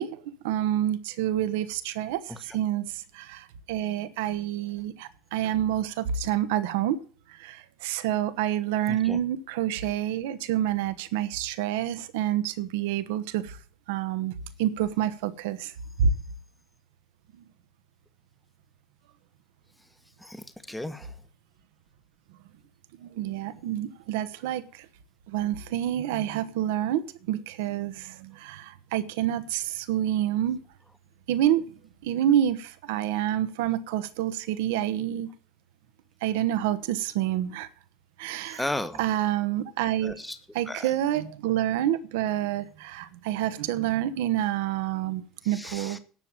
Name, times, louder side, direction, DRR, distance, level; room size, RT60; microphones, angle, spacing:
voice 1, 0.0-2.8 3.1-7.0 7.4-13.6 13.9-14.3 14.6-15.7 16.0-16.1 23.0-24.8 25.3-27.0 27.3-30.6 31.3-31.7 32.0-35.3 36.2-37.7 38.2-38.7 39.0-40.1 40.5-46.0, right 11 dB, 70° right, 12 dB, 1.2 m, -28 dB
voice 2, 8.9-9.2 20.2-21.1 38.5-39.0 40.0-40.4 40.7-40.9 45.5-46.0, left 1 dB, 5° left, 10 dB, 1.3 m, -34 dB
11.0 x 7.2 x 9.0 m, 0.40 s
hypercardioid pair, 70°, 0 cm